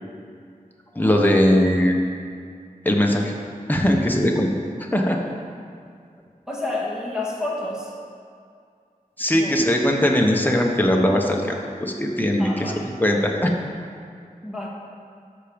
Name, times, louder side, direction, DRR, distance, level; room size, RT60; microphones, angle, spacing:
voice 1, 0.9-2.0 2.8-3.3 3.7-4.5 4.8-5.2 9.2-13.5, equal, 10° left, 0 dB, 1.3 m, -20 dB
voice 2, 6.5-7.9 9.3-9.5 12.4-12.8 14.4-14.7, left 2 dB, 5° right, -5 dB, 1.9 m, -29 dB
12.5 x 6.1 x 5.3 m, 2.3 s
wide cardioid pair, 45°, 15 cm